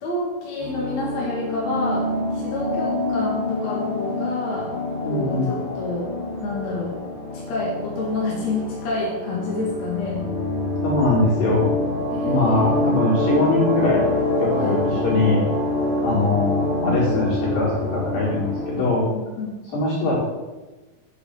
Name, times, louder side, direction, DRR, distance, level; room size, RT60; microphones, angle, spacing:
voice 1, 0.0-4.7 5.1-6.1 6.4-7.0 7.3-10.3 12.1-12.8 14.5-14.8 19.1-19.6, left 2 dB, 50° left, -5 dB, 3.5 m, -28 dB
sound 1, 0.6-19.0, left 2 dB, 15° left, 5.5 m, -26 dB
voice 2, 5.0-5.5 10.8-11.7 12.2-14.0 14.4-15.4 16.0-19.0 19.7-20.2, left 2 dB, 65° left, -6 dB, 6.5 m, -22 dB
10.0 x 9.7 x 6.8 m, 1.1 s
omnidirectional pair, 4.3 m